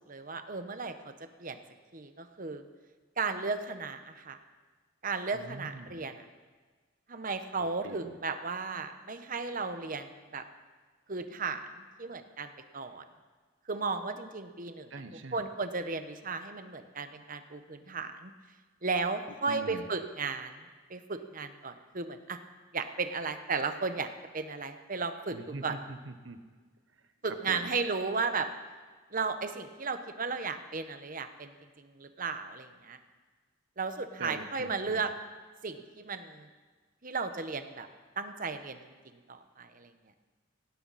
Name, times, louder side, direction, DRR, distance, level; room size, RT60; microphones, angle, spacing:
voice 1, 0.1-1.1 1.4-1.6 1.9-2.6 3.2-4.4 5.0-6.2 7.1-10.4 11.1-13.0 13.7-14.9 15.3-18.3 18.8-20.6 20.9-22.4 22.7-24.1 24.3-25.4 25.6-25.8 27.2-28.5 29.1-33.0 33.8-35.1 35.6-36.5 37.0-37.9 38.2-38.9 39.3-39.9, right 4 dB, 45° right, 8 dB, 1.1 m, -35 dB
voice 2, 5.3-6.1 7.6-8.2 14.9-15.4 19.5-19.8 25.3-26.4 27.5-27.6 34.2-35.0, right 2 dB, 70° right, 8 dB, 1.2 m, -43 dB
18.5 x 16.5 x 4.2 m, 1.4 s
head